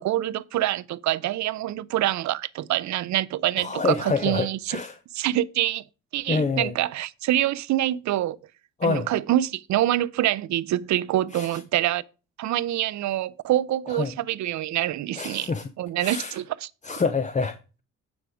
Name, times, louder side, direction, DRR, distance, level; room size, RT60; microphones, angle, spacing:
voice 1, 0.0-4.8 5.1-5.8 6.1-8.4 8.8-12.0 12.4-15.5 15.8-16.7, right 13 dB, 70° right, 0.6 m, -25 dB
voice 2, 3.6-4.9 6.3-6.7 8.8-9.1 11.3-11.6 13.9-14.1 15.2-15.7 16.0-16.4 16.8-17.8, left 4 dB, 25° left, 0.7 m, -27 dB
9.3 x 4.7 x 4.8 m
cardioid pair, 90°, 30 cm